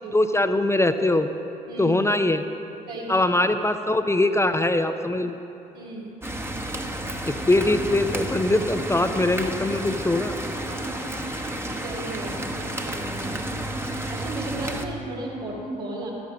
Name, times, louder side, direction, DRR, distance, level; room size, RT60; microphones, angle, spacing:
voice 1, 0.1-1.3 1.8-2.4 3.1-5.3 7.3-10.3, left 2 dB, 15° left, 8 dB, 0.6 m, -22 dB
voice 2, 2.9-3.3 5.7-6.1 10.7-16.1, right 2 dB, 80° right, -4 dB, 2.7 m, -36 dB
sound 1, 6.2-14.9, right 1 dB, 10° right, 1.1 m, -31 dB
13.5 x 9.4 x 5.2 m, 2.9 s
hypercardioid pair, 50°, 21 cm